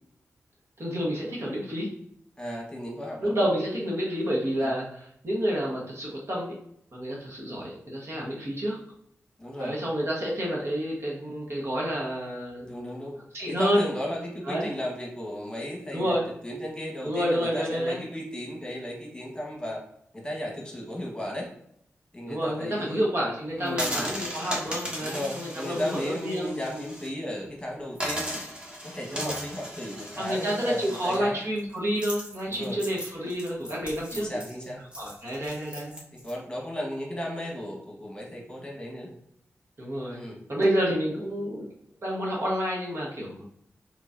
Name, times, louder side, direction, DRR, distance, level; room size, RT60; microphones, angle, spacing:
voice 1, 0.8-1.9 3.2-6.6 6.9-8.8 9.6-12.9 13.3-13.8 14.5-14.7 15.9-16.2 17.0-18.0 22.3-26.5 29.1-29.4 30.2-34.6 35.0-36.0 39.8-40.2 40.5-41.7 42.0-43.4, equal, 55° right, -3 dB, 1.3 m, -29 dB
voice 2, 2.4-3.4 4.6-4.7 9.4-9.8 12.7-13.2 13.5-19.8 20.1-21.5 22.1-23.1 23.6-24.1 25.0-28.5 28.8-31.4 32.5-32.8 34.1-34.8 36.1-39.1 40.1-40.4, equal, 15° left, -2 dB, 1.3 m, -35 dB
sound 1, 23.7-27.1 27.4-27.5 27.9-36.3, equal, 20° right, 1.4 m, -36 dB
3.8 x 3.2 x 2.6 m, 0.72 s
cardioid pair, 45°, 5 cm